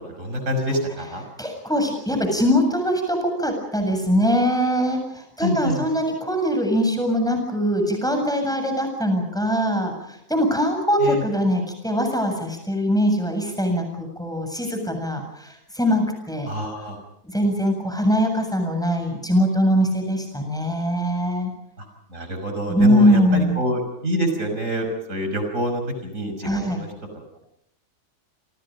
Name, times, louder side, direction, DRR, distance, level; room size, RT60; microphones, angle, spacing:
voice 1, 0.2-1.2 5.4-5.8 11.0-11.2 16.5-17.0 21.8-21.9 22.1-26.9, equal, 65° right, 5 dB, 6.1 m, -26 dB
voice 2, 1.4-16.5 17.3-21.5 22.7-23.6 26.4-26.8, equal, ahead, 4 dB, 7.4 m, -22 dB
29.0 x 27.5 x 5.3 m, 0.76 s
omnidirectional pair, 1.4 m